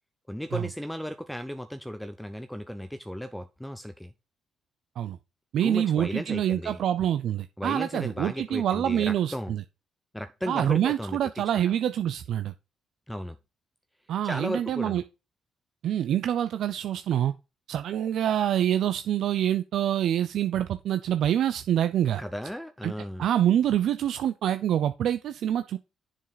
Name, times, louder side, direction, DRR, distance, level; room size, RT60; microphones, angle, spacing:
voice 1, 0.3-4.1 5.6-6.8 7.6-9.5 10.1-11.2 13.1-13.3 14.2-15.0 22.2-23.3, equal, 5° left, 0.7 m, -35 dB
voice 2, 5.5-9.6 10.5-12.5 14.1-15.0 15.8-17.3 17.7-22.2 22.8-22.9 23.2-25.8, right 10 dB, 70° right, 0.5 m, -26 dB
7.3 x 6.6 x 4.1 m
cardioid pair, 90°, 0 cm